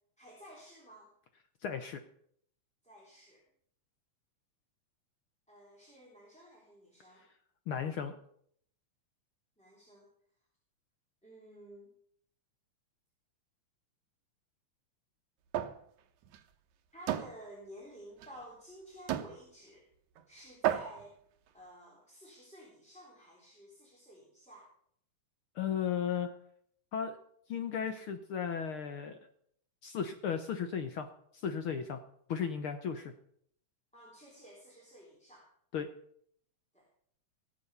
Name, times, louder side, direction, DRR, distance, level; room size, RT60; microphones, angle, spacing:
voice 1, 0.2-1.1 2.8-3.4 5.5-7.3 9.6-10.1 11.2-11.9 16.9-19.9 20.3-21.2 21.5-24.7 33.9-35.5 36.7-36.9, equal, ahead, -4 dB, 3.2 m, -53 dB
voice 2, 1.6-2.0 7.7-8.1 25.6-26.3 26.9-27.2 27.5-29.2 29.8-32.0 32.3-33.1 35.7-35.9, left 7 dB, 65° left, 8 dB, 1.3 m, -35 dB
sound 1, 15.5-15.8 16.2-16.4 17.1-17.3 18.2-18.3 19.1-19.3 20.2-20.3 20.6-21.1, right 11 dB, 75° right, 2.3 m, -32 dB
18.5 x 7.4 x 6.8 m, 0.67 s
omnidirectional pair, 3.4 m